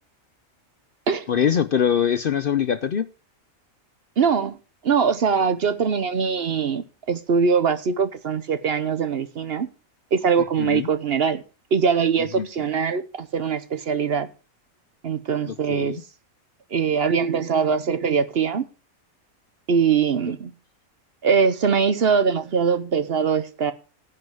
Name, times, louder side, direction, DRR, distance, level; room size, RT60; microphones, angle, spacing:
voice 1, 1.3-3.0 10.6-10.9 12.4-12.5 15.4-16.0, left 8 dB, 55° left, 0.7 m, -23 dB
voice 2, 4.2-4.6 4.8-9.7 10.1-11.4 11.7-14.3 15.0-16.0 16.7-18.6 19.7-20.5 21.2-23.7, right 6 dB, 50° right, 0.9 m, -22 dB
10.5 x 5.4 x 7.7 m
omnidirectional pair, 1.4 m